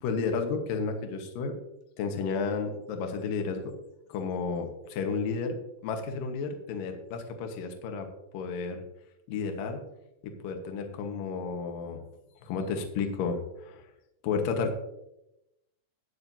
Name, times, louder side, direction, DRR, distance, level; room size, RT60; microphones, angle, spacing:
voice 1, 0.0-1.6 2.0-3.7 4.1-5.6 5.8-8.1 8.3-8.8 9.3-9.8 10.2-12.0 12.4-13.8 14.2-14.7, left 5 dB, 70° left, 4 dB, 2.2 m, -32 dB
14.5 x 9.5 x 2.7 m, 0.87 s
omnidirectional pair, 5.7 m